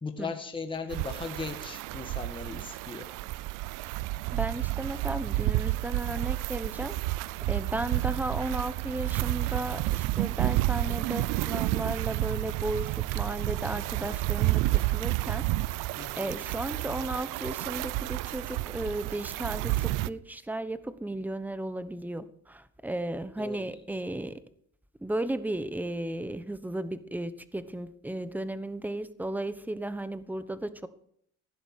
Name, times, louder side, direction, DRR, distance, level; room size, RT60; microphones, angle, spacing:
voice 1, 0.0-3.1 16.0-16.3 23.4-23.7, left 4 dB, 15° left, 5 dB, 1.6 m, -38 dB
sound 1, 0.9-20.1, right 18 dB, 80° right, 0.6 m, -30 dB
voice 2, 4.3-14.6 14.9-15.4 16.1-24.4 25.0-30.9, right 1 dB, 5° right, 13 dB, 1.0 m, -35 dB
16.0 x 11.0 x 6.5 m, 0.68 s
cardioid pair, 110°, 31 cm